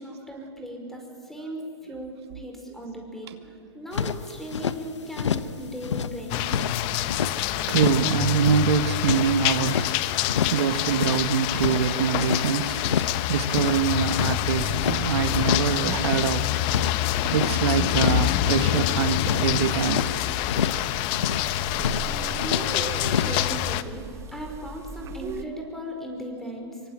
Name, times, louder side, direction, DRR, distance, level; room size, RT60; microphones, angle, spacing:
voice 1, 0.0-3.3 3.7-6.7 22.4-24.0 24.3-26.8, equal, ahead, 2 dB, 5.1 m, -37 dB
sound 1, 3.9-4.8 5.1-5.6 5.8-7.3 7.7-8.1 8.4-9.9 10.3-10.7 10.9-12.4 12.8-13.2 13.5-15.0 15.4-15.8 16.0-17.6 17.9-18.3 18.6-20.1 20.5-20.9 21.1-21.5 21.8-22.7 23.0-23.4, left 7 dB, 85° left, 1.2 m, -28 dB
sound 2, 6.3-23.8, left 14 dB, 35° left, 1.0 m, -26 dB
voice 2, 7.7-9.9 10.5-12.8 13.3-16.4 17.3-20.0 22.3-22.4 23.3-23.4, right 8 dB, 65° right, 8 dB, 1.9 m, -24 dB
sound 3, 14.6-25.4, right 6 dB, 20° right, 1.2 m, -39 dB
26.5 x 24.0 x 9.0 m, 2.4 s
hypercardioid pair, 140°, 15 cm